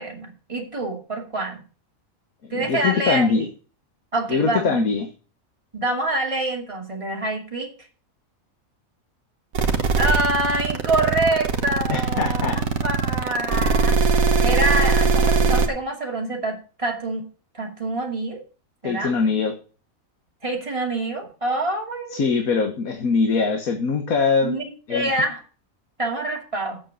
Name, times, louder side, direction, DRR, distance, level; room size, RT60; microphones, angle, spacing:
voice 1, 0.0-1.6 2.5-3.5 4.1-5.0 5.7-7.7 10.0-14.0 14.4-17.3 17.5-18.4 18.8-19.1 20.4-22.2 24.4-24.6 24.9-25.4 26.0-26.8, right 2 dB, 25° right, 0 dB, 2.6 m, -26 dB
voice 2, 2.4-3.5 4.3-5.1 11.9-12.6 18.8-19.5 22.1-24.5 24.9-25.1, left 5 dB, 90° left, 5 dB, 1.7 m, -22 dB
sound 1, 9.6-15.7, right 4 dB, 80° right, 1.6 m, -20 dB
8.4 x 6.5 x 8.3 m, 0.37 s
omnidirectional pair, 1.4 m